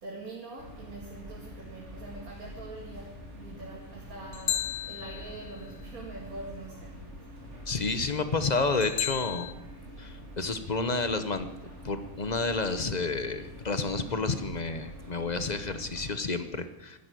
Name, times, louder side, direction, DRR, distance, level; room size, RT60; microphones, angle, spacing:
voice 1, 0.0-7.1, right 2 dB, 80° right, -2 dB, 2.6 m, -44 dB
sound 1, 0.6-16.2, equal, 55° right, 3.0 m, -46 dB
sound 2, 4.3-5.7 8.8-9.5, left 10 dB, 65° left, 1.1 m, -33 dB
voice 2, 7.7-9.5 10.0-11.5 11.8-17.0, left 3 dB, 35° left, 10 dB, 0.9 m, -30 dB
13.0 x 11.0 x 9.2 m, 0.97 s
omnidirectional pair, 1.5 m